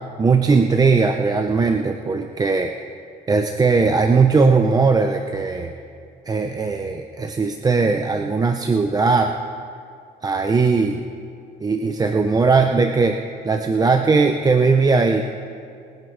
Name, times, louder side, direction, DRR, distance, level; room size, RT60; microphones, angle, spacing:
voice 1, 0.2-2.8 3.3-5.7 6.3-9.3 10.2-11.0 11.6-13.2 13.4-15.2, right 4 dB, 20° right, 5 dB, 0.6 m, -18 dB
22.5 x 7.9 x 5.0 m, 2.4 s
cardioid pair, 110°, 17 cm